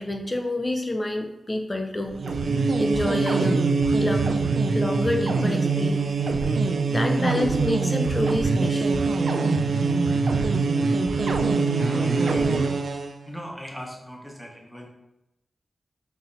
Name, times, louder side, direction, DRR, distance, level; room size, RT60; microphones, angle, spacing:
voice 1, 0.0-2.2 2.8-3.6 4.0-4.3 4.7-6.1 6.8-9.1, left 1 dB, 25° left, 4 dB, 0.4 m, -28 dB
sound 1, 2.1-13.1, right 4 dB, 80° right, 0.3 m, -23 dB
voice 2, 11.8-12.6 12.9-13.0 13.3-14.9, equal, ahead, -1 dB, 0.8 m, -39 dB
5.8 x 2.7 x 2.6 m, 0.89 s
wide cardioid pair, 105°, 0 cm